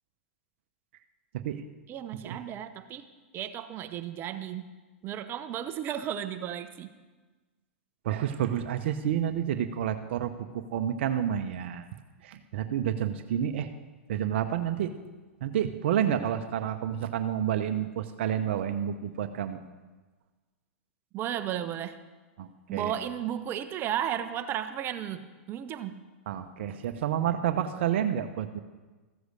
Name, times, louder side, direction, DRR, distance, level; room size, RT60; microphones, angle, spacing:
voice 1, 1.9-3.1 3.3-4.7 5.0-6.9 21.1-22.0 22.7-26.0, right 10 dB, 35° right, 10 dB, 0.8 m, -34 dB
voice 2, 8.0-11.9 12.2-13.7 14.1-14.9 15.4-19.6 22.4-22.9 26.3-28.6, right 10 dB, 60° right, 9 dB, 0.8 m, -29 dB
14.5 x 7.9 x 6.7 m, 1.3 s
hypercardioid pair, 110°, 7 cm